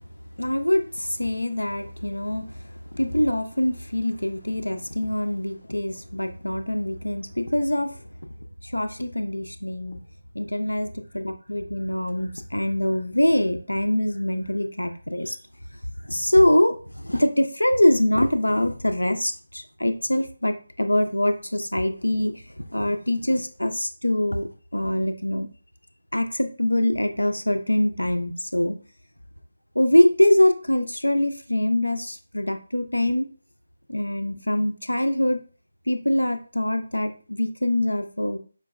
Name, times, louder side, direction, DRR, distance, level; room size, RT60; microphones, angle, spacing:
voice 1, 0.4-2.6 2.9-8.0 8.6-10.0 10.3-15.4 16.0-25.5 26.1-28.8 29.8-33.3 33.9-35.4 35.9-38.4, left 1 dB, 90° left, 8 dB, 0.3 m, -23 dB
4.4 x 2.1 x 2.3 m, 0.40 s
figure-of-eight pair, 155°, 0 cm